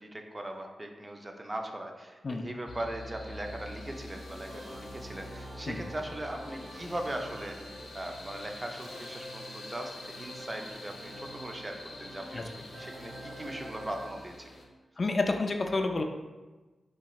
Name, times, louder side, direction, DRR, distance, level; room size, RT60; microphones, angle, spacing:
voice 1, 0.0-14.5, right 1 dB, 25° right, 3 dB, 0.4 m, -40 dB
sound 1, 2.7-14.6, left 1 dB, 75° left, 0.7 m, -45 dB
sound 2, 4.2-14.1, equal, 55° right, 1.0 m, -49 dB
voice 2, 15.0-16.0, left 3 dB, 45° left, 4 dB, 0.3 m, -29 dB
4.1 x 3.0 x 2.3 m, 1.2 s
cardioid pair, 70°, 0 cm